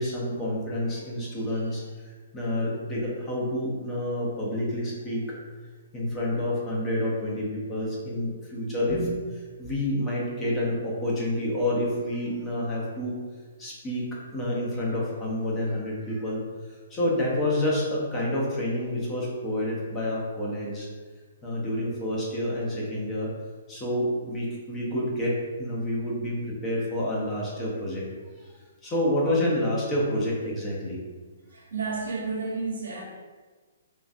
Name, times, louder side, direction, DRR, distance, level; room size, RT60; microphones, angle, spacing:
voice 1, 0.0-5.2 5.9-9.0 9.6-13.2 13.6-16.4 16.9-20.9 21.4-23.3 23.7-28.1 28.4-28.5 28.8-31.0, left 1 dB, 20° left, -5 dB, 0.9 m, -28 dB
voice 2, 31.5-33.0, right 4 dB, 80° right, -3 dB, 1.1 m, -32 dB
3.8 x 2.5 x 2.6 m, 1.4 s
hypercardioid pair, 140°, 0 cm